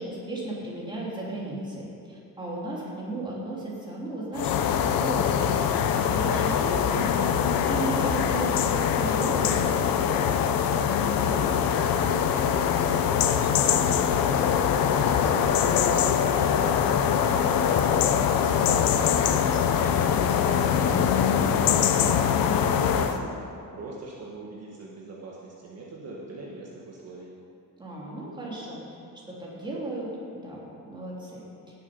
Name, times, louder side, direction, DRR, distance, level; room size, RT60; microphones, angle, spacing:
voice 1, 0.0-10.0 18.2-18.7 27.8-28.8 29.3-31.4, right 2 dB, 15° right, -6 dB, 3.2 m, -35 dB
sound 1, 4.3-23.2, left 8 dB, 80° left, 0.8 m, -23 dB
voice 2, 11.2-27.3, right 2 dB, 45° right, -4 dB, 1.6 m, -41 dB
18.0 x 7.4 x 5.3 m, 2.5 s
cardioid pair, 140°, 34 cm